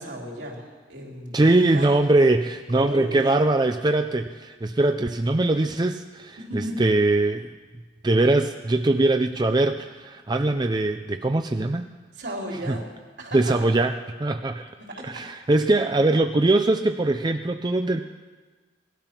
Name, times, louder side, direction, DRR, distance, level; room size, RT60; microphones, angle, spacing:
voice 1, 0.0-1.9 2.7-3.3 6.4-6.8 12.1-12.8 13.2-13.6 14.8-15.3, right 1 dB, 70° right, -1 dB, 3.5 m, -35 dB
voice 2, 1.3-7.5 8.0-11.9 12.7-12.8 13.3-13.9 14.2-14.7 15.0-18.0, right 2 dB, 25° right, 7 dB, 0.4 m, -22 dB
18.5 x 12.5 x 5.9 m, 1.4 s
head